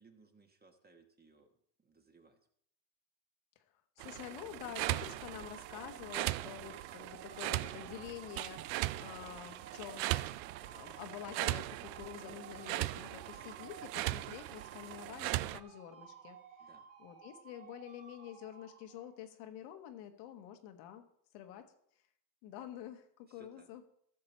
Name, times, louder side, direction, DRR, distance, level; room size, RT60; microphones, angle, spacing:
voice 1, 0.0-2.4 14.3-14.6 16.6-16.9 23.3-23.7, right 4 dB, 20° right, 5 dB, 1.3 m, -63 dB
voice 2, 4.0-10.0 10.6-16.4 17.0-21.0 21.3-21.7 22.4-23.8, left 11 dB, 80° left, 5 dB, 1.5 m, -48 dB
sound 1, 4.0-19.2, right 7 dB, 35° right, 3.4 m, -55 dB
sound 2, 4.0-15.6, right 17 dB, 90° right, 0.6 m, -39 dB
14.5 x 6.8 x 4.3 m, 0.69 s
supercardioid pair, 115°, 50 cm